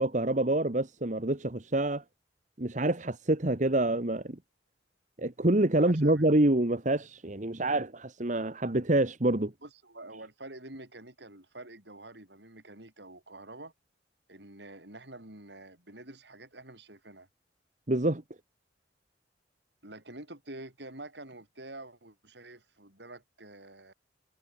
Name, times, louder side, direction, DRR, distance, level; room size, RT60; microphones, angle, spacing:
voice 1, 0.0-2.0 2.6-4.4 5.2-9.5 17.9-18.2, right 1 dB, 40° right, 1.4 m, -27 dB
voice 2, 5.8-6.2 9.6-13.7 14.3-17.3 19.8-23.9, right 2 dB, 70° right, 6.2 m, -47 dB
head